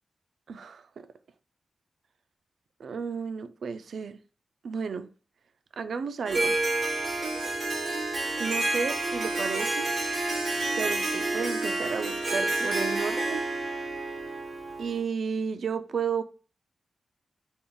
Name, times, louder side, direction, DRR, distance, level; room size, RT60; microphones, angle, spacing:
voice 1, 0.5-1.1 2.8-4.2 4.6-5.1 5.7-6.6 8.4-9.9 10.8-13.4 14.8-16.2, right 6 dB, 80° right, 0.3 m, -33 dB
Harp, 6.3-15.0, right 2 dB, 50° right, 1.3 m, -29 dB
3.4 x 2.3 x 3.7 m
wide cardioid pair, 105°, 0 cm